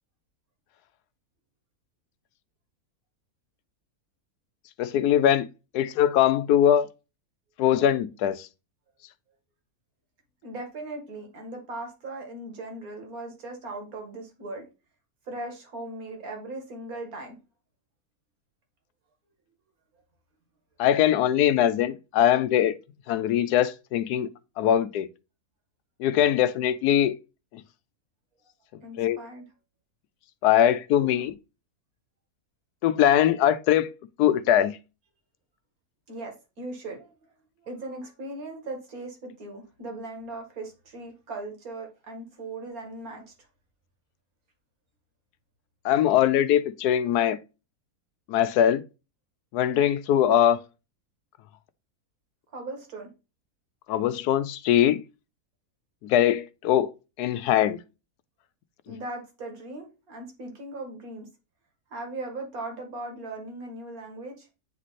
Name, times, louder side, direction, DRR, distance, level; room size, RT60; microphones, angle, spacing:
voice 1, 4.8-5.5 5.7-6.9 7.6-8.5 20.8-22.8 23.1-24.3 24.6-25.1 26.0-27.2 29.0-29.2 30.4-31.3 32.8-33.9 34.2-34.8 45.8-47.4 48.3-48.8 49.5-50.6 53.9-55.0 56.0-56.9 57.2-57.8, left 10 dB, 80° left, 1.1 m, -21 dB
voice 2, 10.4-14.7 15.3-17.4 28.8-29.4 30.6-30.8 31.0-31.3 36.1-37.1 37.6-43.2 52.5-53.1 58.9-61.3 61.9-64.5, right 2 dB, 65° right, 2.1 m, -38 dB
9.0 x 3.1 x 4.1 m
omnidirectional pair, 1.7 m